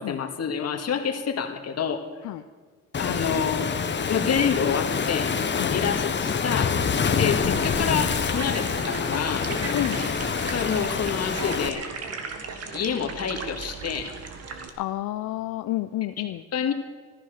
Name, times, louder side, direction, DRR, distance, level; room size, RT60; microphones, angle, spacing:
voice 1, 0.0-2.0 3.0-3.8 4.1-5.4 5.7-6.8 7.2-9.5 10.5-11.9 12.7-14.1 16.2-16.7, left 7 dB, 55° left, 3 dB, 2.0 m, -28 dB
Waves surf, 2.9-11.7, left 6 dB, 35° left, 1.2 m, -26 dB
sound 1, 6.8-14.7, right 4 dB, 55° right, 1.9 m, -37 dB
voice 2, 9.7-10.1 14.8-16.4, left 15 dB, 80° left, 8 dB, 0.7 m, -30 dB
15.0 x 14.0 x 6.6 m, 1.4 s
cardioid pair, 90°, 30 cm